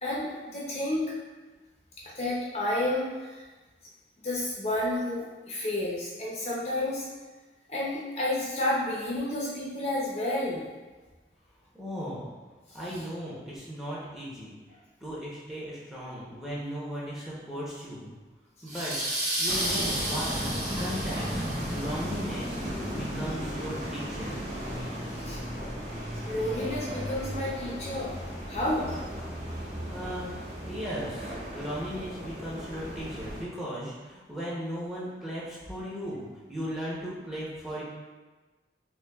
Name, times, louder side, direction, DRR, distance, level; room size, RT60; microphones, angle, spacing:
voice 1, 0.0-1.1 2.2-3.4 4.2-7.1 7.7-10.7 12.9-13.0 25.2-25.4 26.3-28.2 28.5-29.0, left 1 dB, 35° left, -5 dB, 0.5 m, -30 dB
voice 2, 11.7-12.2 12.7-14.5 15.0-18.1 18.6-18.9 19.4-20.3 20.7-21.4 21.7-22.6 22.9-24.4 29.9-30.3 30.7-36.2 36.5-37.8, equal, ahead, -8 dB, 0.7 m, -37 dB
sound 1, 18.7-22.1, right 1 dB, 20° right, 1.3 m, -32 dB
sound 2, 19.5-33.4, equal, 40° right, 1.3 m, -35 dB
5.7 x 2.2 x 2.3 m, 1.3 s
head